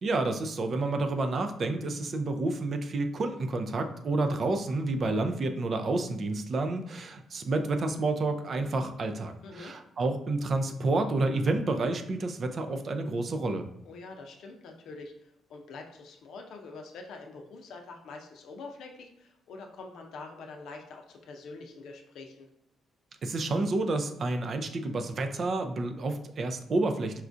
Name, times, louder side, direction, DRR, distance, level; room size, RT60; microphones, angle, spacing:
voice 1, 0.0-13.7 23.2-27.2, right 2 dB, 50° right, 7 dB, 0.4 m, -29 dB
voice 2, 9.4-9.7 13.8-22.5, left 3 dB, 75° left, 3 dB, 0.5 m, -45 dB
4.3 x 2.3 x 2.5 m, 0.77 s
cardioid pair, 90°, 0 cm